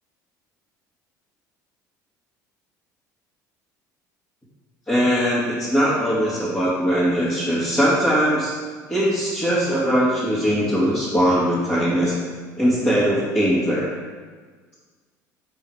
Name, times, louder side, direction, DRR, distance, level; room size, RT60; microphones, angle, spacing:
voice 1, 4.9-8.5 8.9-12.1 12.6-13.9, equal, 15° left, -10 dB, 2.6 m, -20 dB
10.5 x 3.9 x 5.0 m, 1.5 s
figure-of-eight pair, 60°, 10 cm